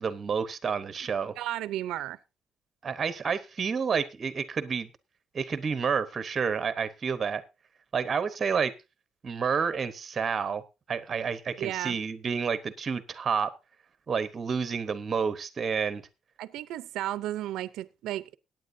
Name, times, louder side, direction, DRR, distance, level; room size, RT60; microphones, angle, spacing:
voice 1, 0.0-1.3 2.8-4.9 5.3-7.4 7.9-8.7 9.2-10.6 10.9-13.5 14.1-16.0, right 6 dB, 25° right, 0.9 m, -29 dB
voice 2, 1.4-2.2 11.6-12.0 16.4-18.4, right 13 dB, 90° right, 0.5 m, -33 dB
21.5 x 9.1 x 2.7 m
cardioid pair, 175°, 0 cm